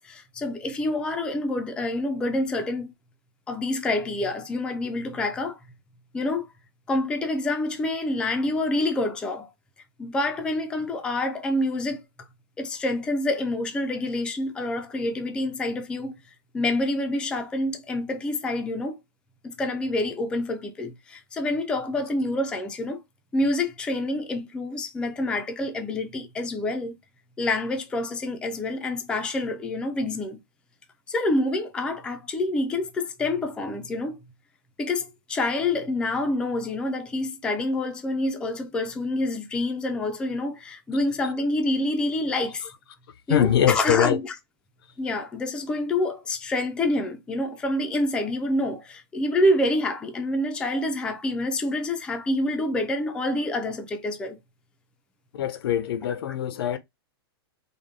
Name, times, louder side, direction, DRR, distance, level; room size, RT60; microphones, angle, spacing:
voice 1, 0.0-2.9 3.5-5.6 6.1-6.5 6.9-9.5 10.0-12.0 12.6-16.1 16.5-19.0 19.4-23.0 23.3-27.0 27.4-30.4 31.1-34.2 34.8-42.7 43.3-44.2 45.0-54.4, left 2 dB, 5° left, 0.4 m, -27 dB
voice 2, 43.3-44.2 55.3-56.8, left 9 dB, 70° left, 0.6 m, -23 dB
3.5 x 2.1 x 3.6 m
hypercardioid pair, 150°, 13 cm